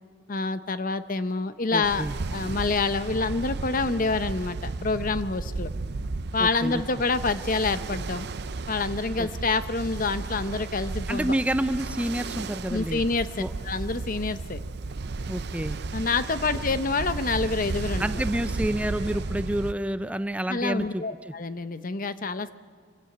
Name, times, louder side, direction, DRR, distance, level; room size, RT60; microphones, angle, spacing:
voice 1, 0.3-2.1 2.3-5.7 6.3-8.3 8.7-11.3 12.7-13.3 13.6-14.6 15.9-18.1 20.5-22.5, left 3 dB, 45° left, 12 dB, 0.8 m, -27 dB
voice 2, 1.7-2.1 6.4-6.8 9.2-9.3 11.1-13.0 13.4-13.5 15.3-15.8 18.0-21.3, right 1 dB, 5° right, 11 dB, 0.5 m, -29 dB
Ocean, 1.8-19.7, right 3 dB, 55° right, 0.6 m, -34 dB
25.5 x 16.5 x 7.9 m, 2.1 s
head